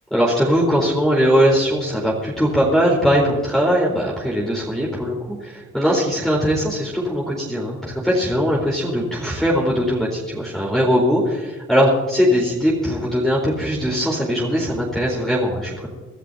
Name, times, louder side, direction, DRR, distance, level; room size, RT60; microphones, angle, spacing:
voice 1, 0.1-15.9, equal, ahead, -5 dB, 4.2 m, -20 dB
24.0 x 13.0 x 2.8 m, 1.4 s
cardioid pair, 90°, 30 cm